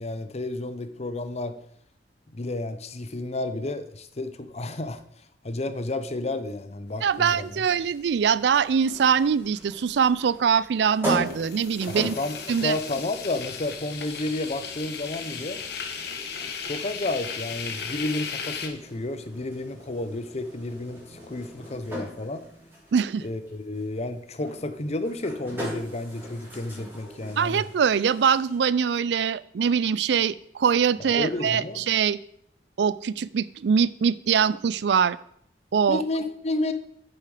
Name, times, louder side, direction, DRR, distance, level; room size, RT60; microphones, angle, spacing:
voice 1, 0.0-1.6 2.3-5.0 5.4-7.6 11.9-15.6 16.4-22.4 23.2-27.6 31.0-31.9 35.9-36.7, left 2 dB, 40° left, 10 dB, 0.8 m, -31 dB
sound 1, 6.9-18.7, left 6 dB, 65° left, 1.2 m, -37 dB
voice 2, 7.0-12.2 12.5-12.8 22.9-23.2 27.4-32.2 32.8-35.2 35.7-36.0, right 7 dB, 70° right, 18 dB, 0.4 m, -23 dB
sound 2, 8.8-28.6, equal, 15° right, 3.6 m, -39 dB
9.1 x 7.2 x 4.9 m, 0.68 s
head